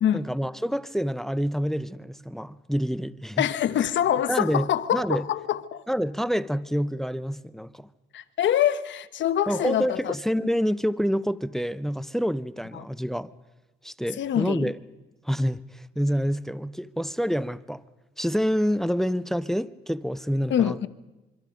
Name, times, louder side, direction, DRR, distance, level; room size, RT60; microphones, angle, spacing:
voice 1, 0.1-3.5 4.3-5.3 5.9-7.9 9.5-13.3 13.8-14.8 15.2-17.8 18.2-20.8, equal, ahead, 0.7 m, -27 dB
voice 2, 3.4-5.8 8.1-10.1 12.7-12.8 14.2-14.7 20.5-20.9, left 10 dB, 70° left, 1.1 m, -25 dB
25.5 x 24.5 x 5.2 m
cardioid pair, 90°, 20 cm